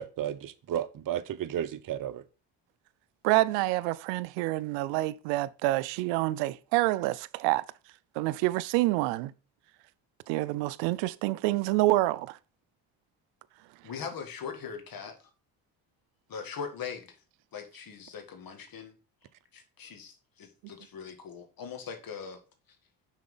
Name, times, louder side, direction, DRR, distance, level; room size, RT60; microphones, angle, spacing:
voice 1, 0.0-2.2, right 10 dB, 50° right, 0.8 m, -33 dB
voice 2, 3.2-7.6 8.2-9.3 10.3-12.4, right 18 dB, 80° right, 0.6 m, -27 dB
voice 3, 13.8-15.3 16.3-17.2 17.5-18.9 19.5-22.4, left 6 dB, 50° left, 1.9 m, -41 dB
6.0 x 4.4 x 5.5 m
supercardioid pair, 65°, 44 cm